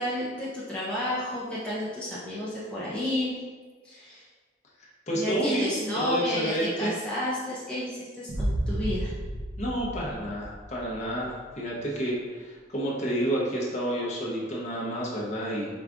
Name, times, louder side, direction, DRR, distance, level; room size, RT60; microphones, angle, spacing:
voice 1, 0.0-3.3 3.8-4.3 5.1-9.1, left 1 dB, 5° left, -9 dB, 0.5 m, -31 dB
voice 2, 5.1-5.7 5.9-6.9 9.6-15.7, right 1 dB, 40° left, -4 dB, 0.9 m, -30 dB
sound 1, 8.3-11.3, right 1 dB, 55° right, 0.7 m, -32 dB
4.9 x 2.3 x 3.6 m, 1.4 s
head